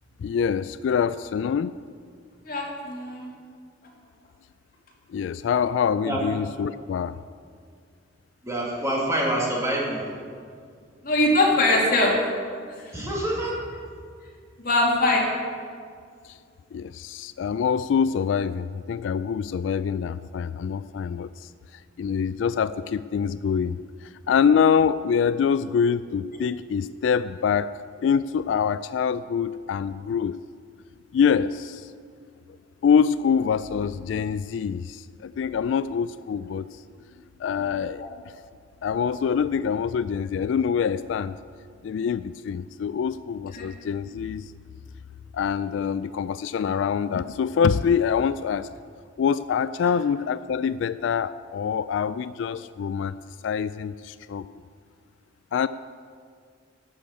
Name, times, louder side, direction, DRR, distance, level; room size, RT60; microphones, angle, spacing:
voice 1, 0.2-1.7 5.1-7.2 16.7-21.5 22.0-27.7 28.0-30.4 31.1-31.9 32.8-36.7 37.4-38.0 38.8-41.3 41.8-44.5 45.3-48.7 49.2-53.1 53.4-54.4 55.5-55.7, left 7 dB, 80° left, 14 dB, 0.3 m, -25 dB
voice 2, 2.4-3.3 11.0-12.2 12.8-12.9 14.6-15.3 43.5-43.6, left 2 dB, 50° left, -2 dB, 2.6 m, -22 dB
voice 3, 8.4-10.0 12.9-13.6, right 1 dB, 15° right, -3 dB, 2.5 m, -26 dB
11.5 x 7.0 x 8.4 m, 2.2 s
head